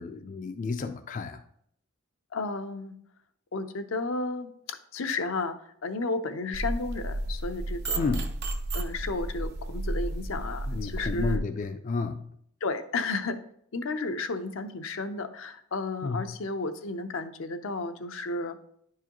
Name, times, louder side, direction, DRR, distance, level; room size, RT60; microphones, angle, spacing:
voice 1, 0.0-1.4 8.0-8.3 10.7-12.2 16.0-16.3, left 4 dB, 40° left, 7 dB, 0.3 m, -31 dB
voice 2, 2.3-2.9 3.5-5.5 5.8-8.2 8.7-11.4 12.6-13.4 13.7-18.6, left 3 dB, 80° left, 8 dB, 0.6 m, -33 dB
sound 1, 6.5-11.4, right 1 dB, 55° right, 0.6 m, -32 dB
10.0 x 4.7 x 2.9 m, 0.69 s
head